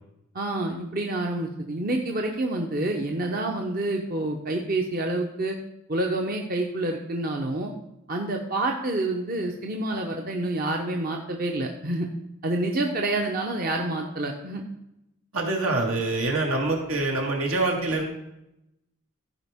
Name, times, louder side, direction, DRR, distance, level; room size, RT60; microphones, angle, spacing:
voice 1, 0.3-5.6 5.9-7.7 8.1-12.1 12.4-14.6, right 2 dB, 40° right, 2 dB, 0.8 m, -28 dB
voice 2, 15.3-18.1, right 2 dB, 85° right, 0 dB, 2.1 m, -25 dB
15.0 x 5.1 x 3.6 m, 0.85 s
head